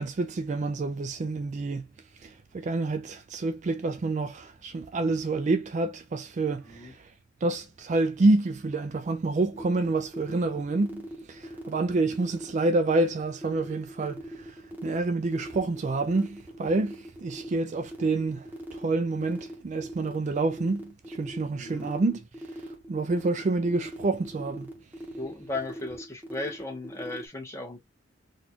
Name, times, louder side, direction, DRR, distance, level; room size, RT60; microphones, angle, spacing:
voice 1, 0.0-1.9 2.2-7.1 7.4-22.2 22.6-24.7, right 3 dB, 40° right, 0.4 m, -28 dB
sound 1, 9.5-27.2, equal, 10° right, 1.0 m, -41 dB
voice 2, 21.6-21.9 25.1-27.8, left 2 dB, 15° left, 1.2 m, -36 dB
4.0 x 2.4 x 2.8 m
head